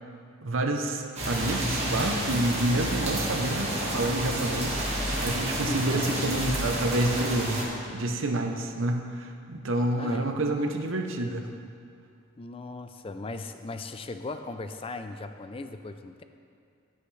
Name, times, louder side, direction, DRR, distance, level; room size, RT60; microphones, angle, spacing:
voice 1, 0.4-4.9 5.2-11.5, right 1 dB, 70° right, 4 dB, 0.8 m, -28 dB
sound 1, 1.2-7.6, right 1 dB, 30° right, 1.6 m, -30 dB
voice 2, 5.7-6.2 10.0-10.3 12.4-16.2, left 3 dB, 25° left, 8 dB, 0.4 m, -37 dB
16.0 x 5.7 x 3.3 m, 2.4 s
head